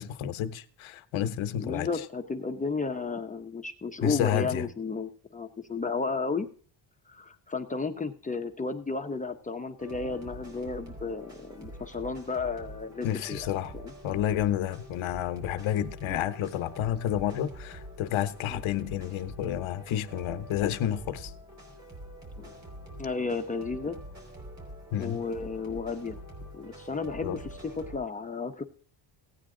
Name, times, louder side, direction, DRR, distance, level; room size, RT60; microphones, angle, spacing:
voice 1, 0.0-1.9 4.0-4.7 13.0-13.7 14.0-21.3 24.9-25.2 27.2-27.4, left 11 dB, 75° left, 1.1 m, -30 dB
voice 2, 1.6-6.5 7.1-13.9 18.5-18.6 22.4-22.5 23.0-24.0 25.0-26.2 26.5-28.6, left 4 dB, 15° left, 0.8 m, -33 dB
sound 1, 9.8-28.0, right 1 dB, 35° right, 4.7 m, -46 dB
16.5 x 9.6 x 3.8 m
cardioid pair, 145°, 48 cm